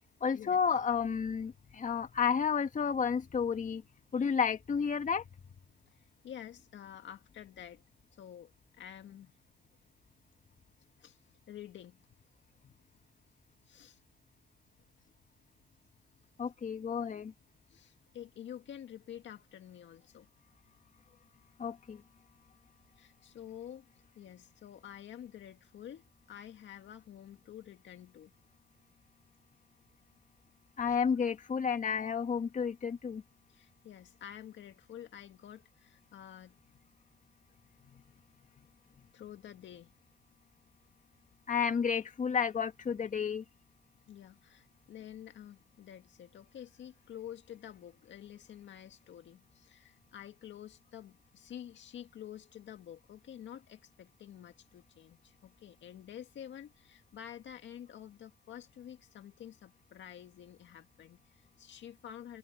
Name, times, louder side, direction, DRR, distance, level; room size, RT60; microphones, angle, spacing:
voice 1, 0.2-3.8 4.1-5.2 16.4-17.3 21.6-22.0 30.8-33.2 41.5-43.4, left 6 dB, 40° left, 1.7 m, -31 dB
voice 2, 5.9-7.8 8.1-9.3 11.0-12.0 13.6-14.0 17.7-20.3 23.0-23.9 24.2-28.3 30.9-31.0 33.5-36.6 39.1-39.9 44.1-62.4, left 10 dB, 70° left, 1.9 m, -49 dB
cardioid pair, 90°, 20 cm